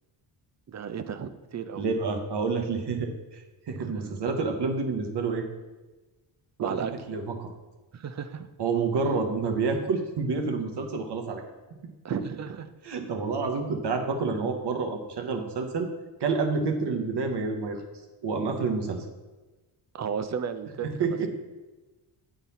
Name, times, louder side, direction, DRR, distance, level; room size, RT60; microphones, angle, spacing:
voice 1, 0.7-1.9 3.9-4.1 6.6-6.9 7.9-8.5 12.0-12.7 19.9-20.9, right 7 dB, 35° right, 10 dB, 0.5 m, -34 dB
voice 2, 1.8-5.5 6.6-7.5 8.6-11.4 12.1-12.2 12.8-15.9 16.2-17.8 18.2-19.0 20.8-21.3, right 4 dB, 55° right, 5 dB, 1.1 m, -28 dB
8.9 x 4.0 x 4.1 m, 1.2 s
cardioid pair, 95°, 48 cm